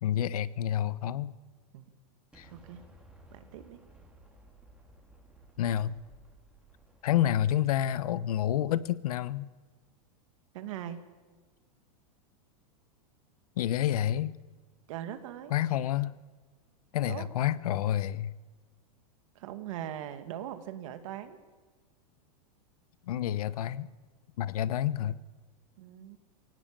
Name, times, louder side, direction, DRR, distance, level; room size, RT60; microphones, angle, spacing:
voice 1, 0.0-1.3 2.4-2.5 5.6-6.0 7.0-9.5 13.6-14.4 15.5-16.2 16.9-18.3 23.1-23.9 24.4-25.2, left 11 dB, 75° left, 17 dB, 1.0 m, -29 dB
Explosion, 2.3-8.3, right 1 dB, 5° right, 3.5 m, -57 dB
voice 2, 2.5-2.8 3.3-3.8 10.5-11.0 14.9-15.5 17.0-17.3 19.4-21.4 25.8-26.2, right 11 dB, 60° right, 9 dB, 2.2 m, -40 dB
21.5 x 17.5 x 8.9 m, 1.4 s
supercardioid pair, 155°, 19 cm